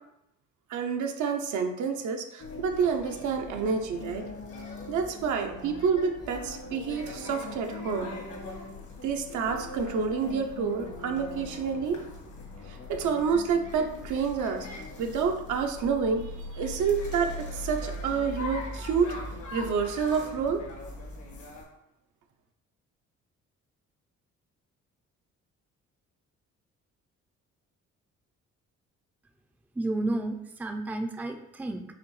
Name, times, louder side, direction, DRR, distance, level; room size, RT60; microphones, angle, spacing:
voice 1, 0.7-4.2 4.9-8.1 9.0-12.0 12.7-14.7 15.0-19.2 19.5-20.6, right 6 dB, 75° right, 5 dB, 0.7 m, -28 dB
sound 1, 2.4-21.6, left 2 dB, 75° left, 1.5 m, -40 dB
voice 2, 29.8-31.8, right 2 dB, 5° right, 5 dB, 0.4 m, -31 dB
4.9 x 3.1 x 3.1 m, 0.82 s
cardioid pair, 90°, 30 cm